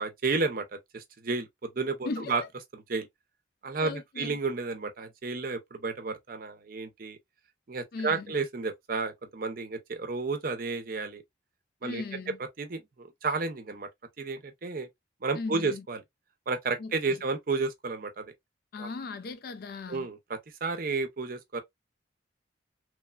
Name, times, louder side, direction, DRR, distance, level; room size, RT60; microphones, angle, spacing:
voice 1, 0.0-2.4 2.7-3.1 3.6-7.2 7.7-11.2 11.8-12.0 12.4-13.9 14.2-14.9 15.2-16.0 16.5-18.3 18.8-18.9 19.9-21.6, right 4 dB, 45° right, 0.5 m, -32 dB
voice 2, 2.0-2.5 3.8-4.3 7.9-8.3 11.8-12.4 15.3-15.8 16.8-17.2 18.7-20.1, left 4 dB, 50° left, 0.3 m, -37 dB
3.1 x 2.1 x 2.2 m
head